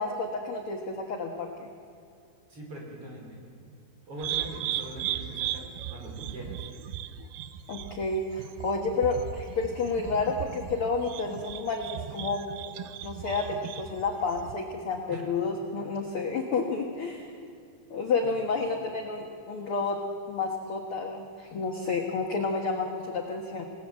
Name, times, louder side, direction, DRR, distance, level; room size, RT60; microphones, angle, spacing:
voice 1, 0.0-1.7 7.7-12.4 13.0-17.3 17.9-20.0 20.3-23.6, left 4 dB, 60° left, 2 dB, 1.4 m, -30 dB
voice 2, 2.5-3.4 4.1-6.7 15.1-15.2 18.2-18.5, right 1 dB, 35° right, -1 dB, 5.4 m, -42 dB
sound 1, 4.2-14.6, right 12 dB, 80° right, 2.1 m, -37 dB
28.5 x 18.5 x 7.6 m, 2.4 s
omnidirectional pair, 4.7 m